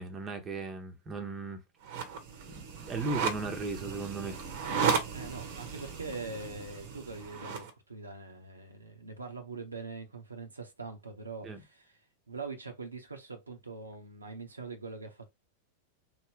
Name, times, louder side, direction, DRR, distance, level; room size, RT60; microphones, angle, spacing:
voice 1, 0.0-1.6 2.0-2.1 2.6-4.4 11.4-11.6, right 3 dB, 20° right, 0.8 m, -37 dB
sound 1, 1.8-7.7, right 6 dB, 50° right, 0.9 m, -35 dB
voice 2, 5.1-11.9 12.3-15.3, right 4 dB, 80° right, 0.8 m, -43 dB
3.3 x 2.0 x 3.7 m
figure-of-eight pair, 90°, 0 cm